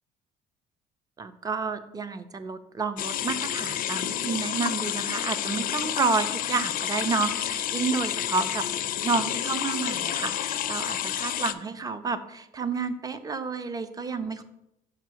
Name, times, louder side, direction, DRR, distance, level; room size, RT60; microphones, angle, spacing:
voice 1, 1.2-14.4, right 4 dB, 20° right, 12 dB, 0.5 m, -30 dB
sound 1, 3.0-11.5, left 12 dB, 55° left, 0.4 m, -30 dB
5.9 x 4.1 x 4.6 m, 0.86 s
cardioid pair, 110°, 17 cm